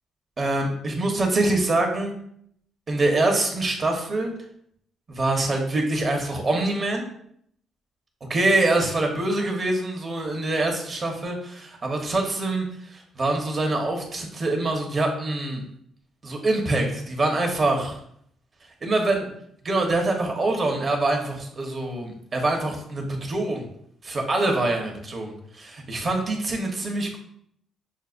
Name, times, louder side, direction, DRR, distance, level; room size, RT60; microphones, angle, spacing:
voice 1, 0.4-2.1 2.9-4.3 5.1-7.0 8.3-15.6 16.2-18.0 18.8-19.2 19.6-23.6 24.0-27.2, right 2 dB, 40° right, 2 dB, 1.0 m, -25 dB
6.3 x 2.1 x 2.5 m, 0.68 s
cardioid pair, 90°, 0 cm